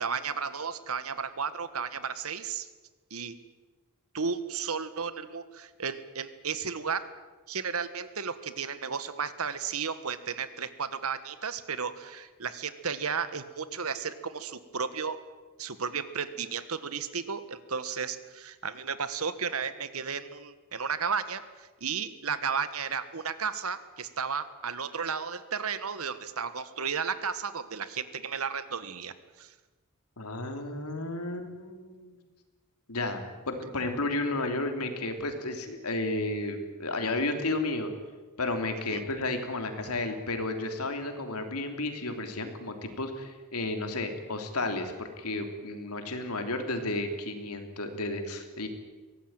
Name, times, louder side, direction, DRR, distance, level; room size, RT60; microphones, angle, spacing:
voice 1, 0.0-2.7 3.1-3.4 4.1-7.1 7.5-15.2 15.6-29.5 38.9-39.0, right 6 dB, 70° right, 13 dB, 1.6 m, -33 dB
voice 2, 30.2-32.2 32.9-37.9 38.4-48.7, left 2 dB, 85° left, 6 dB, 3.4 m, -32 dB
23.0 x 18.0 x 9.1 m, 1.3 s
head